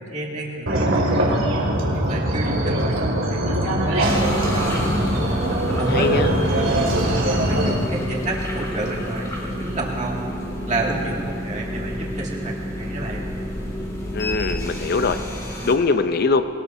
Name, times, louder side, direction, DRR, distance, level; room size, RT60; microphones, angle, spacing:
voice 1, 0.0-1.4 1.9-4.8 5.8-6.2 6.5-10.2 10.7-13.2, right 2 dB, 35° right, -3 dB, 2.2 m, -30 dB
sound 1, 0.7-7.7, right 1 dB, 65° right, 2.3 m, -22 dB
sound 2, 4.0-15.8, equal, 15° left, 2.2 m, -29 dB
voice 2, 5.7-6.3 14.1-15.2 15.6-16.5, left 4 dB, 45° left, 10 dB, 0.6 m, -21 dB
21.5 x 19.0 x 2.7 m, 2.7 s
head